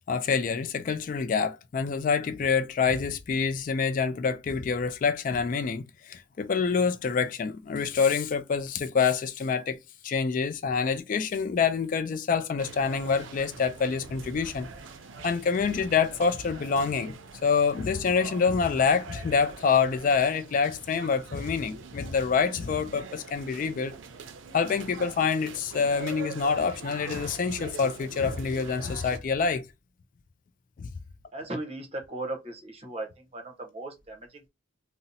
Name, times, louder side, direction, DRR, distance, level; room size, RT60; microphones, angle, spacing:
voice 1, 0.1-9.8 10.0-14.7 15.2-17.1 17.4-23.9 24.5-29.6 30.8-30.9, left 5 dB, 45° left, 0.3 m, -26 dB
sound 1, 12.6-29.2, right 5 dB, 80° right, 0.5 m, -43 dB
voice 2, 31.3-34.4, right 2 dB, 30° right, 0.8 m, -37 dB
2.6 x 2.0 x 4.0 m
head